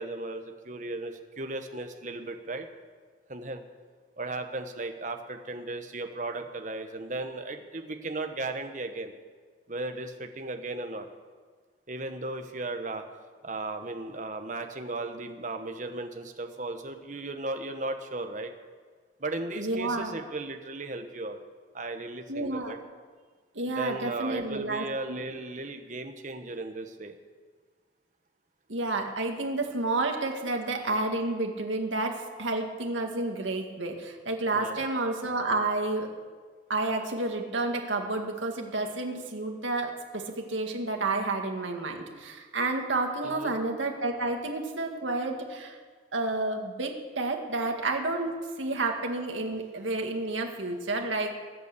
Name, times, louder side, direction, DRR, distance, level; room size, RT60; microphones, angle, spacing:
voice 1, 0.0-2.7 3.3-3.6 4.2-9.1 9.7-11.1 11.9-13.0 13.4-18.5 19.2-21.4 21.7-22.8 23.7-27.1 34.5-34.9 43.2-43.5, right 2 dB, 40° right, 6 dB, 1.2 m, -36 dB
voice 2, 19.5-20.1 22.3-22.7 23.6-25.2 28.7-36.1 36.7-45.8 46.1-51.3, right 2 dB, 80° right, 2 dB, 2.0 m, -30 dB
21.0 x 8.4 x 6.9 m, 1.5 s
head